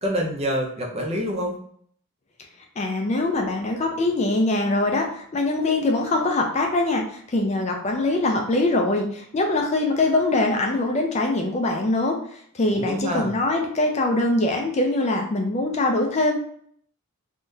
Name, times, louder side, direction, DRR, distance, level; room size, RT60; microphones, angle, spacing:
voice 1, 0.0-1.6 12.7-13.3, equal, 25° right, 0 dB, 0.5 m, -26 dB
voice 2, 2.8-16.4, left 2 dB, 30° left, 2 dB, 0.4 m, -23 dB
3.6 x 2.3 x 2.6 m, 0.63 s
head